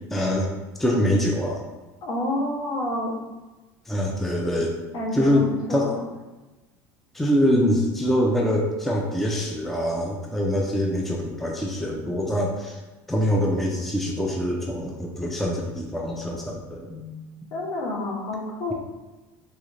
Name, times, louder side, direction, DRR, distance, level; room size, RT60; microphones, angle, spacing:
voice 1, 0.1-0.5 0.8-1.6 3.9-4.7 5.1-5.9 7.1-12.8 13.1-17.2 17.4-17.5, equal, 5° left, -1 dB, 0.4 m, -24 dB
voice 2, 2.0-3.2 4.9-5.9 17.5-18.7, left 1 dB, 60° left, -1 dB, 0.8 m, -28 dB
3.1 x 2.4 x 3.1 m, 1.1 s
supercardioid pair, 120°, 8 cm